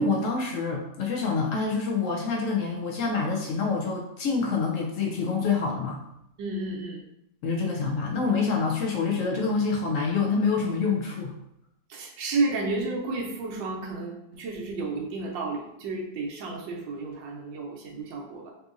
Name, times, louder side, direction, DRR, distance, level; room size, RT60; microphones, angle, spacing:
voice 1, 0.0-6.0 7.4-11.3, left 4 dB, 85° left, 0 dB, 0.7 m, -26 dB
voice 2, 6.4-7.0 11.9-18.5, right 3 dB, 90° right, -1 dB, 1.5 m, -31 dB
5.4 x 2.7 x 2.5 m, 0.80 s
omnidirectional pair, 2.0 m